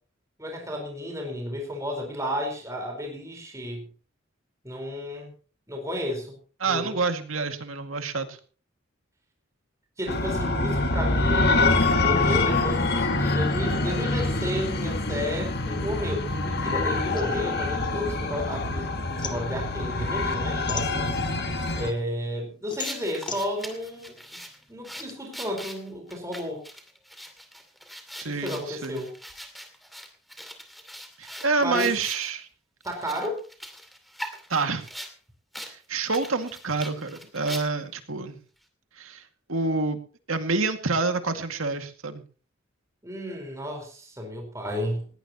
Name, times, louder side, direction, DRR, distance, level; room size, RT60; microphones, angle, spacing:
voice 1, 0.4-3.9 4.6-5.3 5.7-6.4 6.7-7.0 10.0-21.1 21.8-24.2 24.7-26.6 28.2-29.2 31.6-31.9 32.8-33.4 43.0-45.1, equal, 15° right, 2 dB, 4.6 m, -32 dB
voice 2, 6.6-8.4 28.2-29.0 31.2-32.5 34.5-34.8 35.6-38.4 39.0-39.2 39.5-40.0 40.3-42.2, right 3 dB, 85° right, 6 dB, 2.2 m, -27 dB
sound 1, 10.1-21.9, left 2 dB, 50° left, 2.0 m, -25 dB
sound 2, 17.2-18.7 19.0-21.5 22.0-25.1, left 5 dB, 20° left, 1.5 m, -39 dB
sound 3, 22.8-32.3 32.8-35.1 35.5-35.7 36.0-37.9, equal, ahead, 2.5 m, -41 dB
19.5 x 17.0 x 3.0 m, 0.38 s
head